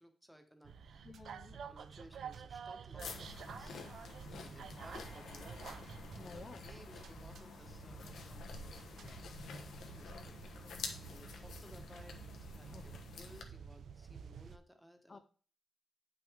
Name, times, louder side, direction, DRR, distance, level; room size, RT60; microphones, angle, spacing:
voice 1, 0.0-1.0 1.5-3.8 4.4-10.3 11.0-15.2, equal, ahead, 5 dB, 1.1 m, -60 dB
sound 1, 0.6-14.6, right 6 dB, 55° right, 0.5 m, -51 dB
voice 2, 1.0-1.6 4.3-4.9 6.2-6.7 10.6-11.1 12.7-12.9 15.1-15.2, left 4 dB, 25° left, 8 dB, 0.4 m, -54 dB
sound 2, 3.0-13.4, left 4 dB, 70° left, 1.2 m, -49 dB
sound 3, 4.8-8.2 8.7-8.8, left 3 dB, 55° left, 1.8 m, -62 dB
9.3 x 6.0 x 3.5 m, 0.41 s
wide cardioid pair, 170°, 0 cm